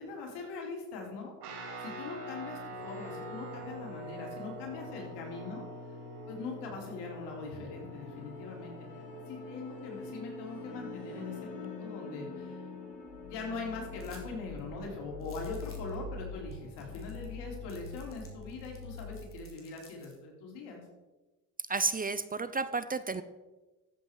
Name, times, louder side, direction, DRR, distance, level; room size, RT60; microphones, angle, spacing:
voice 1, 0.0-1.3 1.8-5.6 6.3-8.7 9.3-12.6 13.2-20.8, left 3 dB, 75° left, 0 dB, 4.1 m, -42 dB
Guitar, 1.4-11.2, equal, 75° right, 3.8 m, -45 dB
sound 1, 2.7-19.3, left 4 dB, 60° left, 4.6 m, -45 dB
sound 2, 14.0-14.3 14.6-14.7 15.2-15.9 16.5-16.6 16.8-17.3 17.7-20.2, left 4 dB, 30° left, 3.7 m, -57 dB
voice 2, 21.7-23.2, right 3 dB, 20° right, 13 dB, 0.6 m, -31 dB
14.0 x 7.8 x 4.8 m, 1.2 s
supercardioid pair, 80°, 40 cm